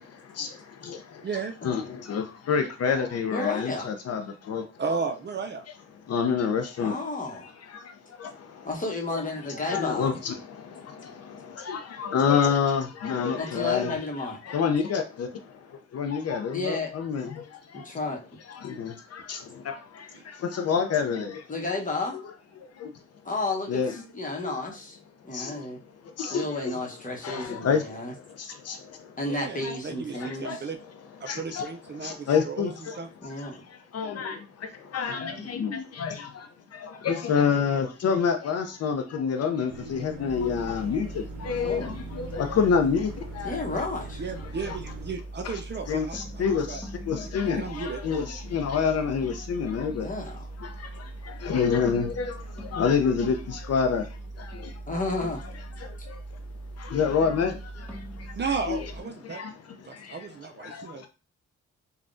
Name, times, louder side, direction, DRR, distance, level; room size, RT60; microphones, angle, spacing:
voice 1, 0.2-1.3 1.6-4.8 5.9-7.0 7.7-8.7 9.6-14.0 14.4-17.9 18.5-21.5 22.1-22.2 22.6-23.0 23.7-23.9 24.4-24.7 25.3-25.7 26.0-26.7 27.2-29.2 29.6-29.7 30.2-30.6 31.2-33.5 33.9-43.6 44.5-44.8 45.4-45.6 45.9-50.1 50.6-54.8 55.8-56.4 56.8-58.9 59.2-61.1, left 6 dB, 55° left, 0.5 m, -29 dB
voice 2, 3.3-3.9 6.8-7.5 8.6-10.1 13.4-14.4 16.5-16.9 17.7-18.2 21.5-22.2 23.2-25.0 25.2-25.8 26.3-28.1 29.2-30.7 33.2-33.7 41.6-41.9 43.4-44.2 50.0-50.5 54.9-55.4 56.0-56.1 59.0-59.1, left 2 dB, 25° left, 1.0 m, -32 dB
voice 3, 4.8-5.6 29.2-30.8 31.2-32.7 33.0-33.1 35.3-35.5 44.2-46.2 46.4-46.8 47.6-48.2 58.4-59.4 59.9-61.0, right 5 dB, 35° right, 0.5 m, -34 dB
sound 1, 39.7-45.1, right 3 dB, 85° right, 0.6 m, -43 dB
sound 2, 40.3-59.0, right 2 dB, 5° left, 1.0 m, -40 dB
3.4 x 2.3 x 2.5 m
cardioid pair, 65°, 30 cm